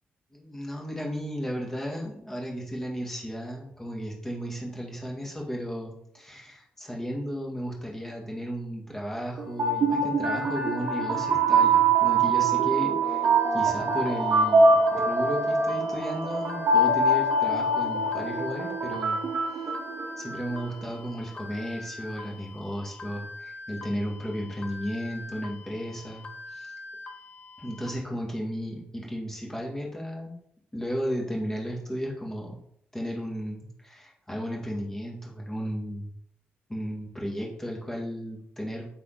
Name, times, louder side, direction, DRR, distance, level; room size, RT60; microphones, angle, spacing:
voice 1, 0.3-19.2 20.2-26.7 27.6-30.3 30.7-32.6 32.9-36.1 36.7-38.9, equal, 10° left, -2 dB, 2.0 m, -34 dB
sound 1, 9.4-20.5, right 3 dB, 55° right, 1.3 m, -23 dB
sound 2, 13.2-27.9, left 2 dB, 30° left, 1.0 m, -44 dB
8.4 x 4.2 x 4.0 m, 0.69 s
cardioid pair, 130°, 4 cm